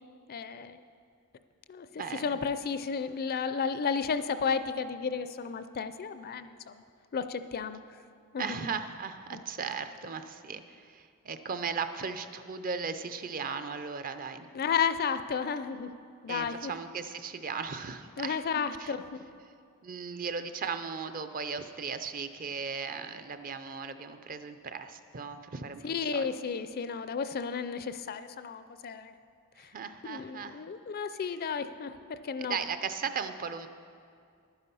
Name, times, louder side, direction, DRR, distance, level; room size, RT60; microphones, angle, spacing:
voice 1, 0.3-0.8 1.7-1.9 2.2-6.8 7.1-7.8 8.3-8.6 9.3-9.4 14.5-15.9 16.2-16.7 18.2-19.1 25.8-29.1 29.6-29.7 30.1-32.6, left 6 dB, 45° left, 11 dB, 0.4 m, -33 dB
voice 2, 2.0-2.4 8.4-14.5 16.3-18.4 18.8-18.9 19.8-26.3 29.7-30.6 32.4-33.7, right 5 dB, 40° right, 10 dB, 0.5 m, -37 dB
11.0 x 9.8 x 5.5 m, 2.3 s
head